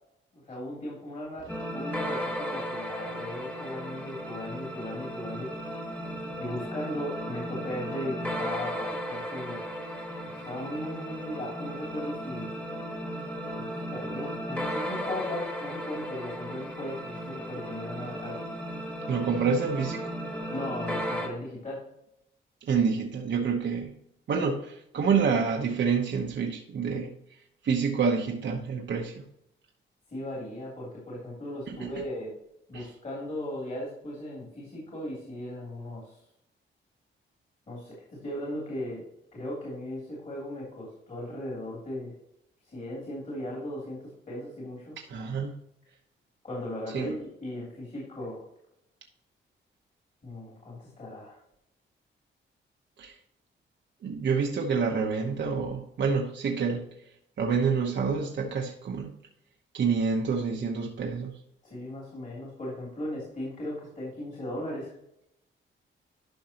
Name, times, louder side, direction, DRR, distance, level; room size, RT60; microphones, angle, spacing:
voice 1, 0.3-1.5 1.7-5.5 5.8-6.0 6.4-9.6 10.2-12.5 13.5-18.4 20.5-21.8 30.1-32.3 32.7-36.2 37.7-39.0 39.3-42.1 42.7-44.9 46.4-48.4 50.2-51.4 61.6-64.9, left 1 dB, 40° left, -5 dB, 3.0 m, -37 dB
sound 1, 1.5-21.3, equal, 10° left, 1.5 m, -35 dB
voice 2, 19.1-20.1 22.6-23.9 24.3-27.1 27.6-29.2 31.7-32.0 32.7-32.9 45.1-45.5 46.9-47.2 53.0-53.2 54.0-56.9 57.4-59.1 59.7-61.3, right 5 dB, 65° right, 1 dB, 1.0 m, -28 dB
11.5 x 5.4 x 2.9 m, 0.79 s
cardioid pair, 105°, 20 cm